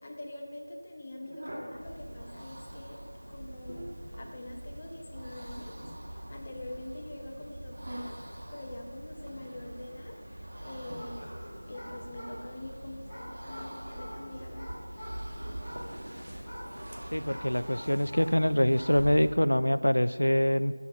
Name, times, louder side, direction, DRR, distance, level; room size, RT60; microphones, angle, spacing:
voice 1, 0.0-3.0 3.3-5.7 6.1-8.2 8.5-10.2 10.6-11.3 11.7-14.7, left 1 dB, 25° left, 0 dB, 0.9 m, -44 dB
sound 1, 1.2-1.8 3.3-4.1 5.8-6.7 7.7-8.4 9.2-9.6 10.9-11.0, equal, 45° right, 1.8 m, -44 dB
sound 2, 1.7-19.5, right 1 dB, 70° right, 1.3 m, -44 dB
sound 3, 11.0-18.4 18.6-19.1, equal, ahead, 2.8 m, -45 dB
voice 2, 17.1-20.7, equal, 90° left, 14 dB, 0.3 m, -25 dB
9.6 x 6.8 x 5.5 m, 2.1 s
figure-of-eight pair, 175°, 0 cm